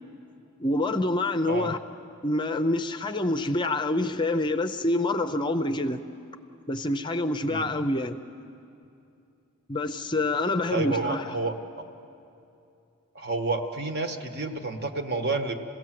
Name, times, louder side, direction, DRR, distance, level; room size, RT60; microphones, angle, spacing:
voice 1, 0.6-1.8 2.2-6.0 6.7-8.2 9.7-11.4, left 2 dB, 20° left, 8 dB, 0.6 m, -26 dB
voice 2, 10.7-11.9 13.1-15.5, right 3 dB, 50° right, 5 dB, 1.4 m, -30 dB
28.0 x 16.5 x 7.6 m, 2.7 s
head